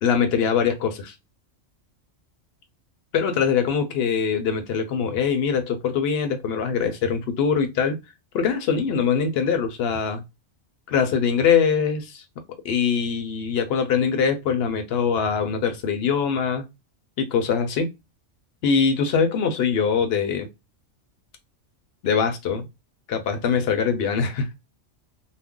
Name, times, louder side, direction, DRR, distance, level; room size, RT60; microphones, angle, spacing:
voice 1, 0.0-1.1 3.1-8.0 8.3-10.2 10.9-12.2 12.6-16.6 17.2-17.9 18.6-20.5 22.0-22.7 23.1-24.5, left 6 dB, 60° left, 0.8 m, -23 dB
2.4 x 2.0 x 3.6 m
omnidirectional pair, 1.3 m